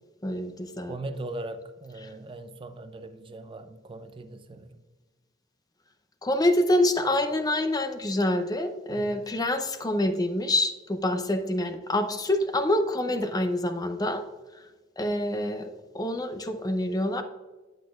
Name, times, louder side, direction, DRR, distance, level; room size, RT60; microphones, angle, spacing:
voice 1, 0.2-1.0 2.0-2.1 6.2-14.2 15.0-17.2, left 1 dB, 20° left, 0.6 m, -26 dB
voice 2, 0.9-4.7 8.9-9.2, right 2 dB, 25° right, 0.5 m, -39 dB
10.5 x 6.1 x 2.4 m
head